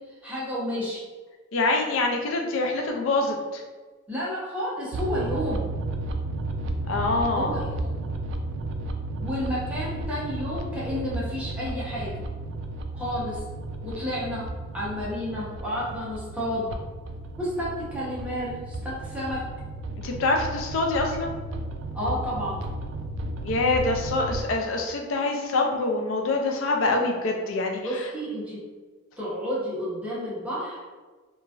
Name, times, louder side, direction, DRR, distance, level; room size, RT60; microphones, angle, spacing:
voice 1, 0.2-1.0 4.1-5.7 7.3-8.0 9.2-12.2 12.9-13.4 13.8-14.5 14.7-16.7 17.4-19.4 21.9-22.6 27.8-28.6 29.2-30.8, equal, 5° right, -9 dB, 0.8 m, -31 dB
voice 2, 1.5-3.6 6.9-7.6 20.0-21.3 23.4-27.8, left 2 dB, 90° left, 2 dB, 0.4 m, -25 dB
sound 1, 4.9-24.4, right 2 dB, 75° right, 0.3 m, -33 dB
2.9 x 2.4 x 2.4 m, 1.4 s
head